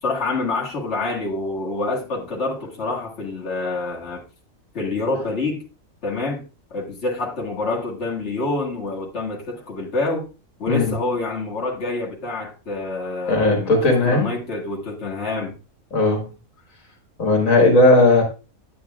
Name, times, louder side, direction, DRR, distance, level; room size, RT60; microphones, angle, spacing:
voice 1, 0.0-4.2 4.7-5.6 6.0-6.5 6.7-10.3 10.6-15.6, left 2 dB, 55° left, 2.0 m, -27 dB
voice 2, 13.3-14.3 15.9-16.3 17.2-18.2, left 2 dB, 75° left, 2.1 m, -16 dB
9.0 x 8.5 x 2.3 m
omnidirectional pair, 1.4 m